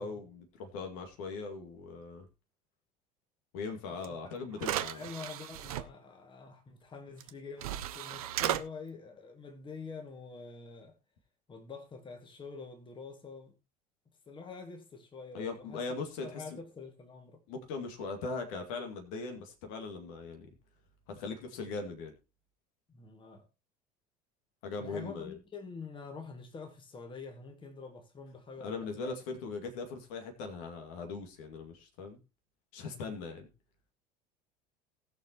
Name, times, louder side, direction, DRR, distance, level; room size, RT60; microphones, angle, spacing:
voice 1, 0.0-2.3 3.5-5.0 15.3-16.4 17.5-20.5 21.1-22.1 24.6-25.3 28.6-32.2 32.7-33.5, left 4 dB, 55° left, 2.2 m, -40 dB
voice 2, 3.9-4.3 4.9-11.0 11.5-13.5 14.3-17.4 22.9-23.5 24.8-29.2, left 4 dB, 25° left, 2.2 m, -46 dB
sound 1, 4.0-4.1 4.6-5.8 7.2-7.3 7.6-8.6, right 12 dB, 60° right, 0.8 m, -35 dB
19.0 x 6.7 x 3.0 m
figure-of-eight pair, 70°, 21 cm